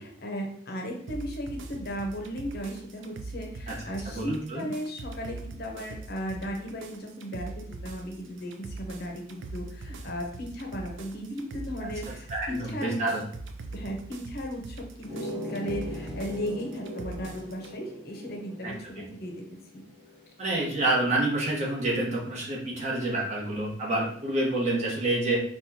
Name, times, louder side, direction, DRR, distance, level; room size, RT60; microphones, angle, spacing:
voice 1, 0.0-13.0 13.7-19.4 19.7-19.9, equal, 50° left, 1 dB, 0.6 m, -36 dB
sound 1, 1.1-17.7, right 3 dB, 70° right, 0.4 m, -42 dB
voice 2, 4.0-4.7 12.3-13.2 18.6-19.1 20.4-25.4, right 2 dB, 35° right, -4 dB, 0.9 m, -28 dB
sound 2, 15.0-20.3, left 1 dB, 10° left, 1.0 m, -40 dB
4.2 x 2.3 x 2.7 m, 0.63 s
head